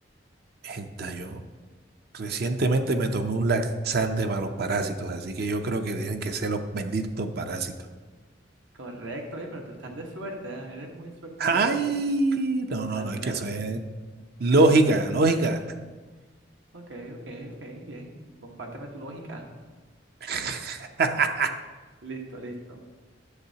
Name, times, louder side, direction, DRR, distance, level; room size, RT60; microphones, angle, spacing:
voice 1, 0.6-1.4 2.1-7.7 11.4-13.8 14.4-15.6 20.2-21.5, right 3 dB, 55° right, 7 dB, 0.6 m, -25 dB
voice 2, 8.7-11.7 12.9-13.5 16.7-19.4 22.0-22.8, right 1 dB, 85° right, 1 dB, 1.2 m, -39 dB
9.8 x 7.2 x 2.8 m, 1.3 s
head